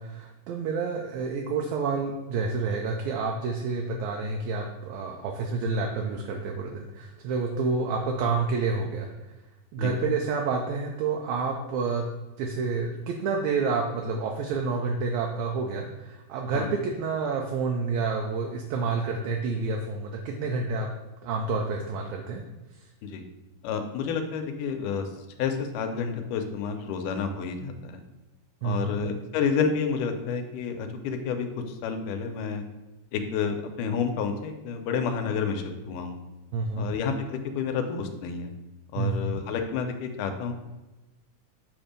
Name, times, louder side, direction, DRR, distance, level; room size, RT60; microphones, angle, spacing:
voice 1, 0.0-9.1 9.7-12.0 12.4-20.9 21.2-22.4 22.7-22.9 28.6-29.0 36.5-36.9 38.9-39.3, right 4 dB, 80° right, 1 dB, 1.8 m, -29 dB
voice 2, 23.6-25.1 25.4-28.0 28.6-32.6 33.1-36.2 36.8-38.5 38.9-40.5, left 6 dB, 85° left, 6 dB, 2.2 m, -30 dB
7.2 x 2.6 x 5.0 m, 1.1 s
omnidirectional pair, 3.6 m